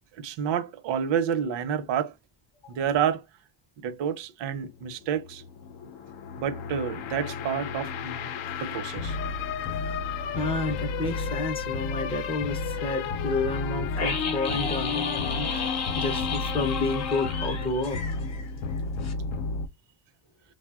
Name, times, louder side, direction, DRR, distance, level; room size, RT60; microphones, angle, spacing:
voice 1, 0.2-2.1 2.7-3.2 3.8-5.4 6.4-8.3 8.6-9.2, right 8 dB, 65° right, 0.6 m, -29 dB
sound 1, 4.5-19.7, left 4 dB, 75° left, 0.6 m, -32 dB
voice 2, 9.8-18.0, left 3 dB, 15° left, 0.4 m, -31 dB
sound 2, 13.9-18.8 19.0-19.1, left 5 dB, 35° left, 0.7 m, -33 dB
3.1 x 2.0 x 2.3 m
cardioid pair, 150°, 46 cm